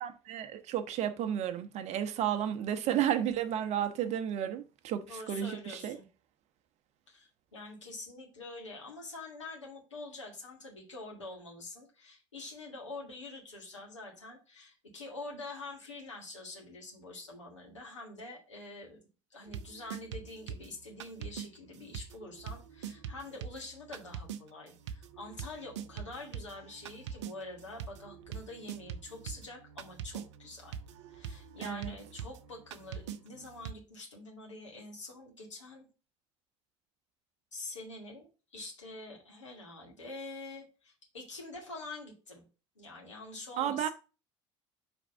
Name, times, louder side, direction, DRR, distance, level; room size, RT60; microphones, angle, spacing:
voice 1, 0.0-6.0 31.6-31.9 43.6-43.9, right 10 dB, 50° right, 0.7 m, -32 dB
voice 2, 5.1-6.1 7.1-19.0 19.3-30.7 31.1-35.9 37.5-42.5 42.8-43.9, left 2 dB, 85° left, 1.7 m, -46 dB
sound 1, 19.5-21.5 21.9-33.7, right 8 dB, 75° right, 0.5 m, -44 dB
5.0 x 3.5 x 5.3 m
figure-of-eight pair, 65°, 15 cm